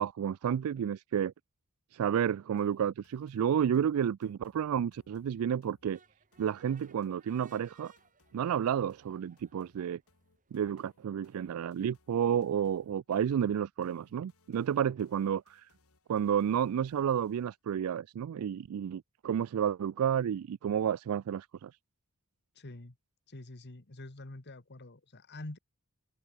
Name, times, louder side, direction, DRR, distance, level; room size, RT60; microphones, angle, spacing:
voice 1, 0.0-1.3 1.9-6.0 6.4-7.9 8.3-10.0 10.5-15.7 16.1-21.7, right 8 dB, 70° right, 0.3 m, -31 dB
sound 1, 2.6-17.6, left 2 dB, 75° left, 3.4 m, -71 dB
sound 2, 5.9-11.0, right 5 dB, 35° right, 3.6 m, -65 dB
voice 2, 22.5-22.9 23.3-25.6, left 2 dB, 50° left, 1.7 m, -46 dB
head